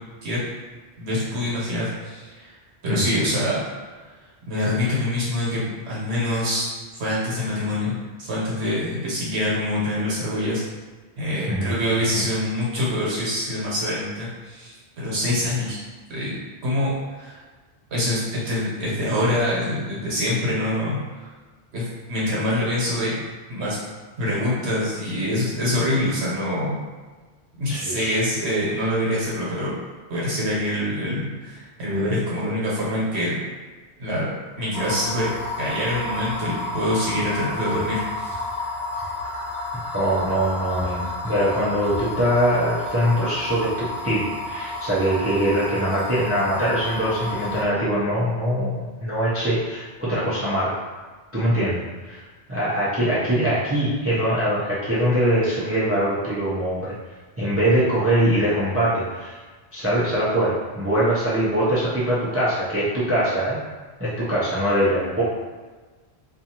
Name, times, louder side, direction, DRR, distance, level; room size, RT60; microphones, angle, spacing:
voice 1, 1.0-2.5 2.8-3.6 4.5-6.7 6.9-10.6 11.2-15.8 16.1-16.4 16.6-17.4 17.9-18.2 18.4-21.3 21.7-23.1 23.5-23.8 24.2-26.8 27.6-29.8 30.1-33.4 34.0-35.3 35.6-38.4, left 1 dB, 80° right, -7 dB, 1.2 m, -25 dB
voice 2, 27.7-28.1 39.9-50.8 51.3-51.8 52.1-52.2 52.5-56.9 57.4-59.4 59.7-63.6 64.0-65.2, right 1 dB, 20° right, -9 dB, 0.4 m, -22 dB
sound 1, 34.7-47.6, left 2 dB, 75° left, 0.8 m, -31 dB
2.5 x 2.4 x 2.8 m, 1.3 s
omnidirectional pair, 1.1 m